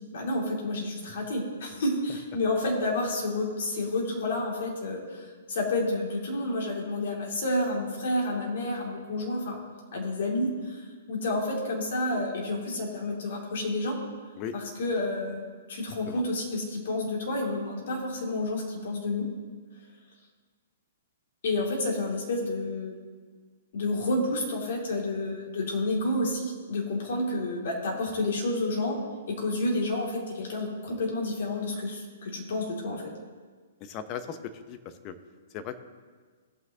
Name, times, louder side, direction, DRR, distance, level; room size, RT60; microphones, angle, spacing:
voice 1, 0.1-9.6 9.9-14.0 14.5-19.3 21.4-23.0 23.7-29.0 29.3-33.0, left 2 dB, 65° left, -1 dB, 2.4 m, -30 dB
voice 2, 33.8-35.1 35.5-35.8, left 8 dB, 35° left, 9 dB, 0.8 m, -37 dB
17.0 x 6.0 x 2.8 m, 1.5 s
hypercardioid pair, 125°, 0 cm